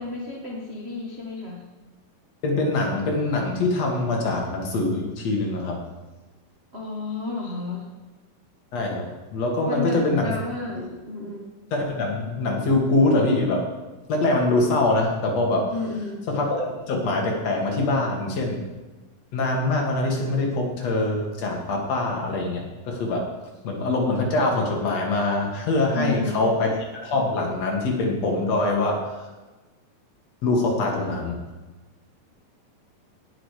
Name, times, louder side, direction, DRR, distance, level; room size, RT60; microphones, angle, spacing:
voice 1, 0.0-1.6 6.7-7.9 9.6-11.5 15.7-16.3 25.9-26.6, left 2 dB, 55° right, -3 dB, 0.6 m, -31 dB
voice 2, 2.4-5.8 8.7-10.3 10.8-10.9 11.7-13.6 14.1-15.7 16.3-18.7 19.3-23.3 23.6-29.0 30.4-31.4, left 2 dB, 55° left, 0 dB, 2.7 m, -24 dB
17.5 x 6.2 x 4.9 m, 1.2 s
omnidirectional pair, 3.9 m